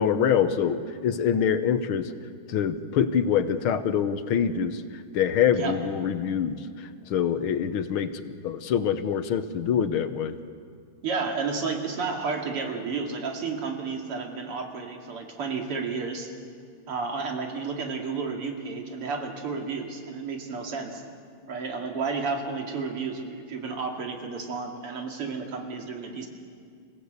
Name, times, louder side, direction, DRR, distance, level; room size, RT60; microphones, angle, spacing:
voice 1, 0.0-2.1 2.5-4.8 5.1-10.4, left 8 dB, 75° left, 11 dB, 1.8 m, -25 dB
voice 2, 11.0-16.3 16.9-21.0 21.5-26.3, right 4 dB, 85° right, 2 dB, 3.3 m, -32 dB
28.0 x 17.0 x 8.1 m, 2.1 s
omnidirectional pair, 2.4 m